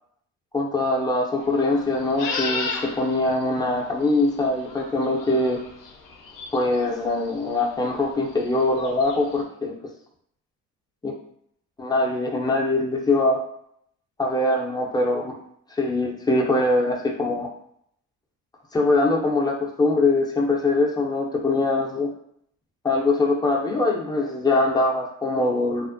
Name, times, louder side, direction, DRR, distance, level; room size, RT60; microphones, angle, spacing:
voice 1, 0.5-5.6 6.5-9.8 11.8-13.4 14.2-15.4 15.7-17.5 18.7-22.1 22.8-25.9, left 2 dB, 10° left, 0 dB, 0.6 m, -22 dB
sound 1, 1.4-9.4, left 4 dB, 60° left, 0.6 m, -35 dB
2.4 x 2.0 x 2.5 m, 0.70 s
supercardioid pair, 65°, 37 cm